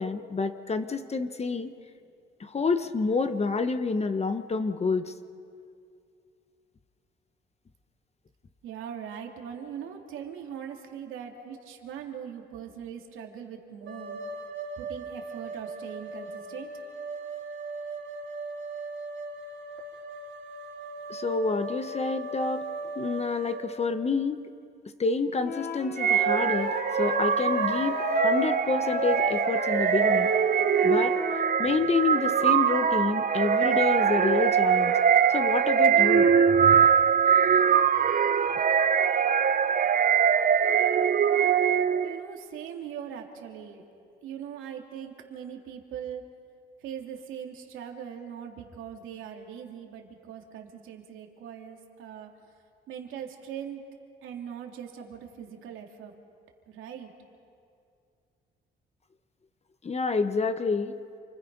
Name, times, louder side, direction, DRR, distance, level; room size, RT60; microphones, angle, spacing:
voice 1, 0.0-1.7 2.4-5.1 21.1-22.7 22.9-24.4 25.0-30.3 30.8-31.1 31.6-35.0 35.3-36.3 59.8-61.0, left 4 dB, 30° left, 9 dB, 1.1 m, -28 dB
voice 2, 8.6-14.2 14.8-16.8 42.0-43.8 44.2-46.3 46.8-52.3 52.9-53.8 54.2-56.1 56.7-57.1, right 8 dB, 90° right, 2 dB, 2.8 m, -41 dB
sound 1, 13.9-23.6, right 2 dB, 70° right, 4.3 m, -38 dB
Wind instrument woodwind instrument, 25.4-31.6, left 5 dB, 55° left, 2.7 m, -34 dB
sound 2, 26.0-42.2, right 7 dB, 45° right, 0.8 m, -22 dB
28.5 x 24.5 x 5.5 m, 2.4 s
cardioid pair, 90°, 20 cm